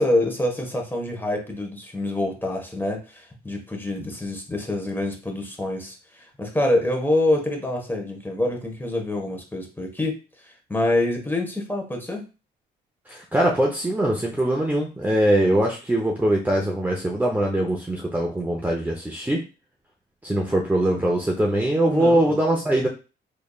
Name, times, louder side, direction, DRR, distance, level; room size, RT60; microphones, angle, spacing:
voice 1, 0.0-12.3 21.9-22.4 22.7-22.9, left 1 dB, 10° left, 1 dB, 1.3 m, -26 dB
voice 2, 13.1-19.4 20.2-22.9, right 1 dB, 10° right, 0 dB, 0.7 m, -22 dB
3.9 x 3.4 x 2.4 m, 0.31 s
cardioid pair, 90°, 20 cm